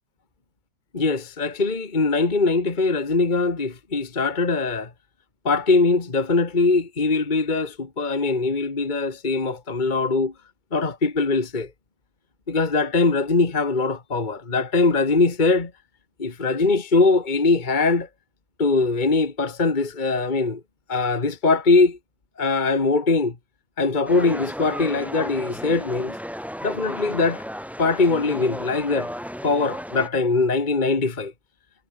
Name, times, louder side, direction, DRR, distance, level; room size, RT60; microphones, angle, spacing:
voice 1, 0.9-4.9 5.4-10.3 10.7-11.7 12.5-15.7 16.2-18.1 18.6-20.6 20.9-22.0 22.4-23.4 23.8-26.2 26.6-27.4 27.8-29.1 29.4-31.3, left 3 dB, 30° left, 2.0 m, -21 dB
sound 1, 24.1-30.1, equal, ahead, 5.5 m, -34 dB
omnidirectional pair, 1.7 m